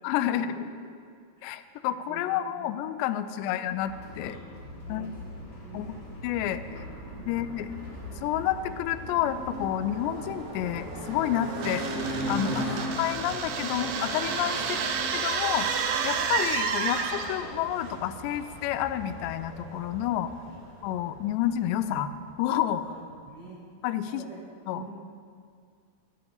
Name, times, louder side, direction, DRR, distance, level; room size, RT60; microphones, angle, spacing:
voice 1, 0.0-0.7 1.4-4.4 4.9-5.1 5.7-5.9 6.2-6.6 7.3-7.7 8.2-11.9 12.3-12.5 13.0-14.6 15.2-15.7 16.0-20.3 20.8-22.1 22.4-22.8 23.8-24.3 24.7-24.8, left 11 dB, 85° left, 12 dB, 2.7 m, -29 dB
sound 1, 3.7-19.2 19.4-19.5 19.9-20.0, left 1 dB, 30° left, 2.6 m, -46 dB
voice 2, 4.2-5.1 5.6-6.0 6.7-6.8 7.2-7.4 12.4-12.8 14.7-14.8 20.4-20.6 22.8-23.0 23.2-23.6 24.0-24.4 24.7-24.9, right 4 dB, 65° right, -6 dB, 1.1 m, -46 dB
sound 2, 5.2-22.6, right 1 dB, 50° right, 2.2 m, -39 dB
sound 3, 11.6-17.5, right 6 dB, 85° right, 3.0 m, -30 dB
9.0 x 8.6 x 8.1 m, 2.1 s
omnidirectional pair, 5.0 m